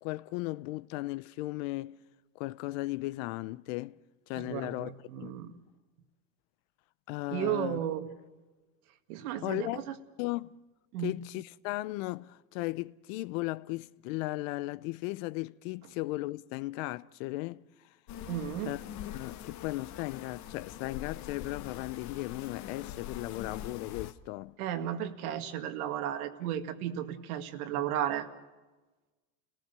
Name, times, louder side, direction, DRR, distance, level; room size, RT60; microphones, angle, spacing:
voice 1, 0.0-2.0 2.3-4.0 4.3-4.9 5.2-5.3 7.1-7.8 9.4-9.8 10.2-10.6 11.0-17.7 18.7-18.8 19.1-24.6, left 20 dB, 60° left, 0.7 m, -36 dB
voice 2, 4.4-5.5 7.3-8.1 9.1-9.9 10.9-11.1 18.3-18.8 24.6-28.3, right 11 dB, 75° right, 2.2 m, -34 dB
sound 1, 18.1-24.1, left 11 dB, 40° left, 1.1 m, -43 dB
30.0 x 18.0 x 6.8 m
supercardioid pair, 130°, 44 cm